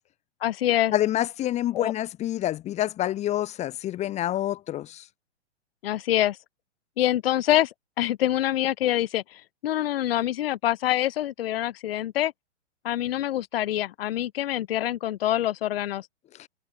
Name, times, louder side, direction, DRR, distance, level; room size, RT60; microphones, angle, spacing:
voice 1, 0.4-0.9 1.7-1.9 5.8-6.4 7.0-12.3 12.8-16.1, left 13 dB, 55° left, 1.2 m, -25 dB
voice 2, 0.9-5.0, left 13 dB, 20° left, 1.0 m, -27 dB
hypercardioid pair, 120°, 35 cm